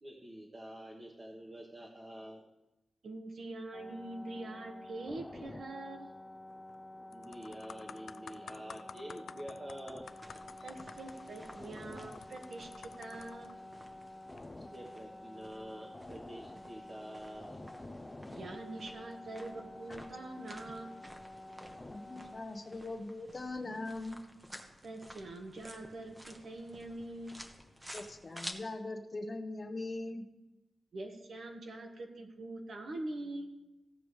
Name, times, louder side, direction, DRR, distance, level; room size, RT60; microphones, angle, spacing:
voice 1, 0.0-2.4 7.1-10.1 14.6-17.6, equal, 30° right, -1 dB, 1.2 m, -47 dB
voice 2, 3.0-6.1 10.6-13.5 18.3-20.9 24.8-27.5 30.9-33.5, right 2 dB, 60° right, 2 dB, 1.4 m, -44 dB
sound 1, 3.7-22.4, left 1 dB, 15° left, 0.5 m, -49 dB
sound 2, 6.5-6.8 7.1-13.5 14.2-14.4, left 6 dB, 80° left, 0.4 m, -52 dB
sound 3, 10.0-28.5, equal, 10° right, 1.0 m, -53 dB
voice 3, 21.9-24.2 27.9-30.3, left 2 dB, 35° left, 5 dB, 1.0 m, -41 dB
15.5 x 7.0 x 3.2 m, 0.98 s
wide cardioid pair, 135°, 0 cm